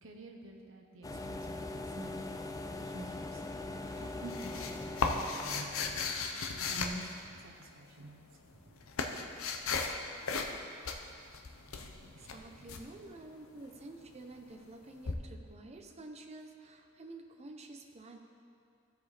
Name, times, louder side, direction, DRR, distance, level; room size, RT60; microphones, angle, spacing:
voice 1, 0.0-6.0 6.6-8.9 11.6-12.7, right 1 dB, 70° right, 2 dB, 1.0 m, -49 dB
sound 1, 1.0-6.2, left 2 dB, 15° left, 0.4 m, -42 dB
sound 2, 3.9-7.7 8.4-10.0 10.3-10.6 10.8-12.8 15.1-15.2, left 4 dB, 85° left, 0.7 m, -36 dB
voice 2, 12.1-18.2, right 2 dB, 30° right, 3 dB, 0.8 m, -50 dB
15.0 x 5.1 x 4.1 m, 2.4 s
head